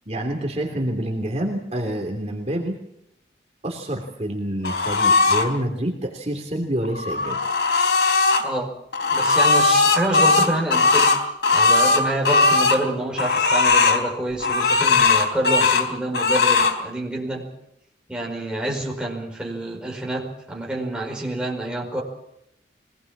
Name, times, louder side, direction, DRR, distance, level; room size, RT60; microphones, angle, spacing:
voice 1, 0.1-2.8 3.6-7.4, right 1 dB, 35° right, 2 dB, 3.1 m, -27 dB
sound 1, 4.6-5.5 6.8-8.4 8.9-12.8 13.2-14.0 14.4-15.9 16.1-16.7, left 3 dB, 90° left, 3.8 m, -18 dB
voice 2, 8.4-8.7 9.1-11.1 11.5-17.5 18.1-22.0, right 1 dB, 5° right, -2 dB, 5.0 m, -27 dB
23.5 x 19.0 x 7.4 m, 0.81 s
head